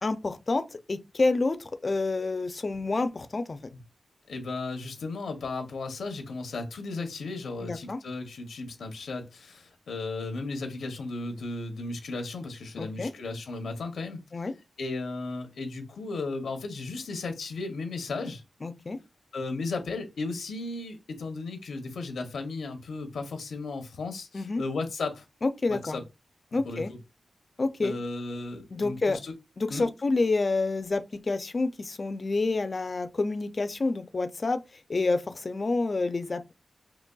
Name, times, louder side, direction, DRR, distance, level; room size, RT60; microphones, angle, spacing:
voice 1, 0.0-3.6 7.6-8.0 12.8-13.1 14.3-14.5 18.6-19.0 24.3-24.6 25.4-26.0 26.5-26.9 27.6-27.9 28.7-29.2 29.6-34.6 34.9-36.5, left 3 dB, 35° left, 0.4 m, -28 dB
voice 2, 4.3-14.2 14.8-18.4 19.3-25.2 25.7-26.0 26.5-27.0 27.8-29.3 29.7-29.9, left 3 dB, 85° left, 0.7 m, -35 dB
3.8 x 2.9 x 2.2 m
wide cardioid pair, 150°, 0 cm